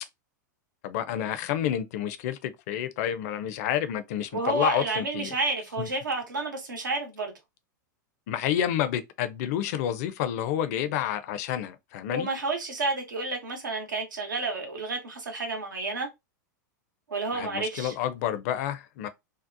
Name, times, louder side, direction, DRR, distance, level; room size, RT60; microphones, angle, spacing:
voice 1, 0.8-5.3 5.8-5.9 8.3-12.3 17.3-19.1, left 10 dB, 55° left, 0.5 m, -29 dB
voice 2, 4.3-7.3 12.1-16.1 17.1-17.9, right 3 dB, 85° right, 0.9 m, -30 dB
2.7 x 2.0 x 2.5 m
hypercardioid pair, 105°, 10 cm